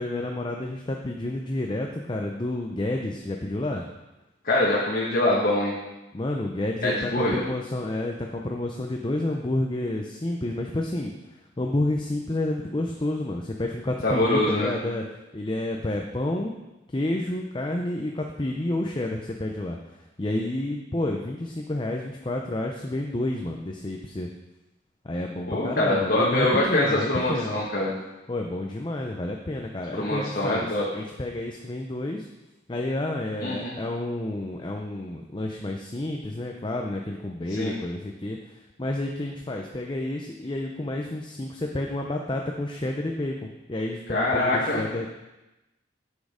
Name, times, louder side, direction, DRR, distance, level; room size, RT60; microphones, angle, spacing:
voice 1, 0.0-3.8 6.1-11.1 11.6-15.0 15.3-16.5 16.9-19.8 20.2-24.3 25.0-27.6 28.3-30.7 30.9-32.3 32.7-45.1, left 1 dB, 25° left, 2 dB, 0.6 m, -30 dB
voice 2, 4.4-5.7 6.8-7.4 14.0-14.7 25.5-27.9 29.9-30.8 33.4-33.8 37.5-37.7 44.1-44.8, left 1 dB, 50° left, -5 dB, 1.4 m, -24 dB
8.4 x 6.4 x 5.0 m, 1.0 s
head